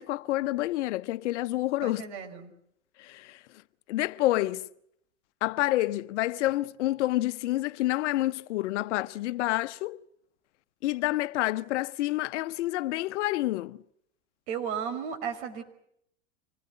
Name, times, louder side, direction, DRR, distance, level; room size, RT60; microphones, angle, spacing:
voice 1, 0.0-2.0 3.0-3.4 3.9-4.6 5.4-10.0 10.8-13.8, left 16 dB, 65° left, 1.1 m, -28 dB
voice 2, 1.8-2.5 14.5-15.6, right 7 dB, 65° right, 5.6 m, -34 dB
26.5 x 19.5 x 9.7 m
hypercardioid pair, 110°, 37 cm